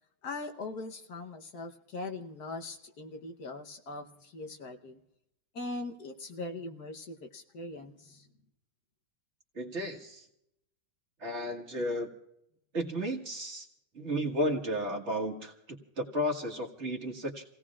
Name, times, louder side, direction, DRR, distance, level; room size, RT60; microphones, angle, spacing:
voice 1, 0.2-5.0 5.5-8.3, left 2 dB, 60° left, 4 dB, 1.5 m, -41 dB
voice 2, 9.6-10.3 11.2-12.1 12.7-13.7 14.0-17.4, equal, 40° right, 2 dB, 1.8 m, -33 dB
30.0 x 17.5 x 2.4 m, 0.79 s
omnidirectional pair, 2.0 m